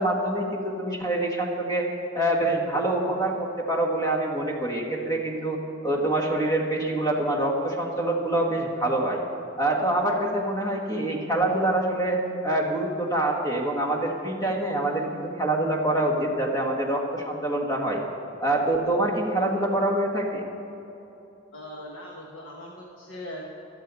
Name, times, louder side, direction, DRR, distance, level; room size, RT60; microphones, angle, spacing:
voice 1, 0.0-1.9 2.1-9.2 9.6-18.0 18.4-20.4, right 1 dB, 20° left, 0 dB, 1.8 m, -25 dB
voice 2, 21.5-23.5, left 1 dB, 90° left, -2 dB, 1.3 m, -40 dB
16.0 x 12.0 x 4.1 m, 2.9 s
head